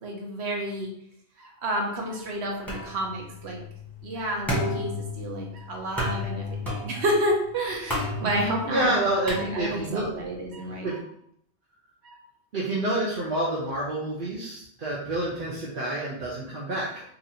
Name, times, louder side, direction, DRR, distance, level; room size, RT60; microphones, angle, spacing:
voice 1, 0.0-0.9 1.4-3.6 4.0-8.9 9.2-10.9 12.0-12.2, right 1 dB, 75° right, 0 dB, 1.1 m, -30 dB
sound 1, 2.7-10.0, left 1 dB, ahead, 1.1 m, -33 dB
voice 2, 8.1-10.1 10.8-11.0 12.5-17.0, right 1 dB, 55° right, -6 dB, 0.9 m, -28 dB
3.0 x 2.6 x 4.0 m, 0.71 s
omnidirectional pair, 1.1 m